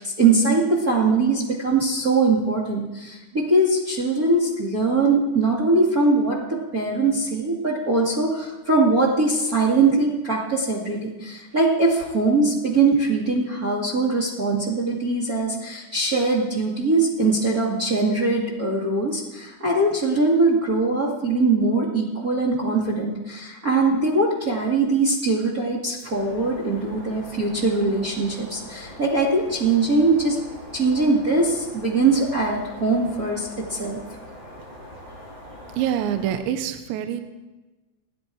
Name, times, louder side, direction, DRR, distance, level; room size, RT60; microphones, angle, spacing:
voice 1, 0.0-6.4 6.7-30.4 30.7-34.0, right 3 dB, 45° right, -3 dB, 1.1 m, -21 dB
sound 1, 26.1-36.4, equal, 10° right, 6.6 m, -42 dB
voice 2, 35.8-37.2, right 10 dB, 80° right, 8 dB, 3.0 m, -25 dB
30.0 x 10.0 x 4.7 m, 1.1 s
omnidirectional pair, 5.5 m